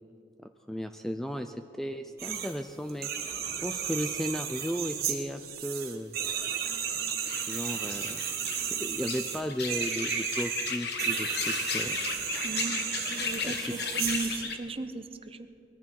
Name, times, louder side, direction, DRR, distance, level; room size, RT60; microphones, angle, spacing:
voice 1, 0.4-3.3 3.6-6.1 7.5-8.2 8.6-12.0 13.4-13.7, equal, ahead, 7 dB, 0.4 m, -35 dB
sound 1, 2.2-2.5 2.9-14.5, right 8 dB, 60° right, 1.8 m, -33 dB
sound 2, 7.2-14.5, left 5 dB, 65° left, 1.3 m, -35 dB
voice 2, 12.4-15.5, right 3 dB, 35° right, 9 dB, 0.8 m, -36 dB
20.5 x 14.0 x 4.6 m, 2.5 s
head